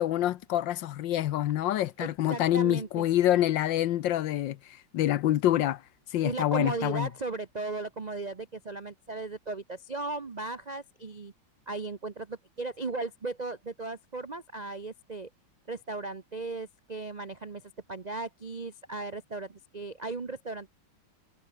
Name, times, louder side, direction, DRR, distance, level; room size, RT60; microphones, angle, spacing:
voice 1, 0.0-5.8 6.1-7.1, left 13 dB, 70° left, 1.3 m, -26 dB
voice 2, 2.0-3.0 6.2-11.3 11.7-15.3 15.7-17.6 17.9-20.7, right 3 dB, 90° right, 0.3 m, -36 dB
omnidirectional pair, 2.4 m